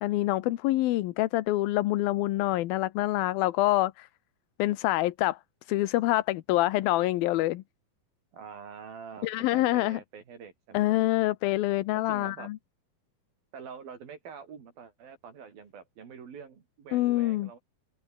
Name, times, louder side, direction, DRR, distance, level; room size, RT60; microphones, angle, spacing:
voice 1, 0.0-4.1 4.6-5.4 5.7-7.6 9.2-10.0 10.7-12.6 16.9-17.5, left 16 dB, 85° left, 2.8 m, -26 dB
voice 2, 8.3-11.0 12.1-12.5 13.5-17.6, right 6 dB, 80° right, 5.5 m, -45 dB
omnidirectional pair, 4.2 m